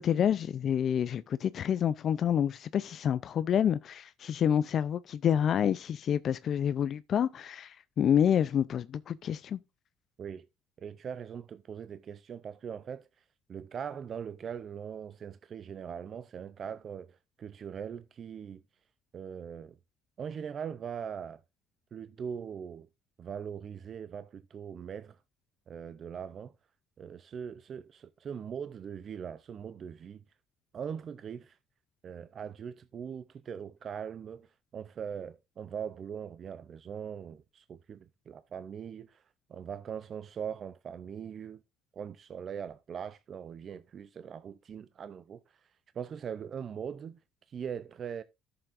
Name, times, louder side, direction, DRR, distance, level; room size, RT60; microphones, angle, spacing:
voice 1, 0.0-9.6, left 9 dB, 50° left, 0.4 m, -28 dB
voice 2, 10.8-18.6 19.1-19.8 20.2-21.4 21.9-22.9 23.2-25.2 25.7-26.5 27.0-30.2 30.7-31.6 32.0-41.6 41.9-47.2 47.5-48.2, right 7 dB, 40° right, 0.4 m, -41 dB
13.5 x 6.9 x 2.5 m
cardioid pair, 115°, 0 cm